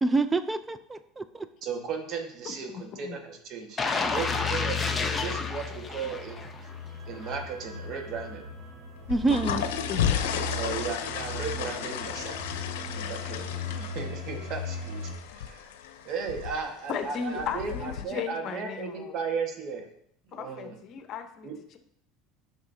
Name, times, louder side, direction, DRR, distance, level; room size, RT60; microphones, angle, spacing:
voice 1, 0.0-1.5 9.1-9.7, right 3 dB, 15° right, 11 dB, 0.5 m, -27 dB
voice 2, 1.6-6.4 7.1-8.4 10.5-12.5 12.8-15.7 16.0-19.9 20.3-20.8 21.4-21.6, right 5 dB, 55° right, 3 dB, 1.5 m, -36 dB
voice 3, 2.7-3.2 9.9-10.0 10.3-10.5 16.9-19.2 20.3-21.8, left 7 dB, 50° left, 7 dB, 0.9 m, -36 dB
sound 1, 3.8-6.7 7.1-7.3, left 4 dB, 20° left, 0.9 m, -29 dB
sound 2, 5.3-15.1, left 2 dB, 85° right, 2.4 m, -39 dB
sound 3, 9.0-18.0, left 9 dB, 85° left, 0.6 m, -34 dB
10.0 x 6.0 x 2.7 m, 0.70 s
supercardioid pair, 100°, 0 cm